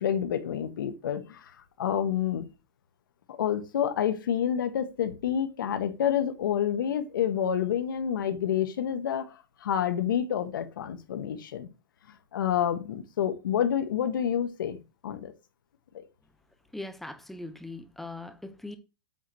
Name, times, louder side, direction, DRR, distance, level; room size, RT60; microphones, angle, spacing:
voice 1, 0.0-1.5 1.8-2.4 3.3-11.7 12.3-15.3 15.9-16.0, left 9 dB, 75° left, 1.2 m, -28 dB
voice 2, 16.7-18.8, left 2 dB, ahead, 0.5 m, -40 dB
8.0 x 3.0 x 6.2 m
supercardioid pair, 170°, 11 cm